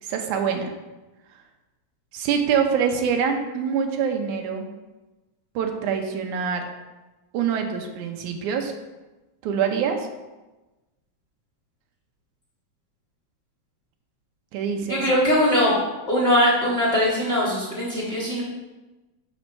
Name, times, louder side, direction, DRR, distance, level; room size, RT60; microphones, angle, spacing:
voice 1, 0.0-0.7 2.1-4.7 5.6-6.7 7.3-8.7 9.4-10.1 14.5-15.0, right 7 dB, 90° right, 4 dB, 2.4 m, -25 dB
voice 2, 14.9-15.7 16.1-18.4, equal, 15° left, -7 dB, 2.5 m, -21 dB
7.6 x 4.4 x 6.5 m, 1.1 s
omnidirectional pair, 3.4 m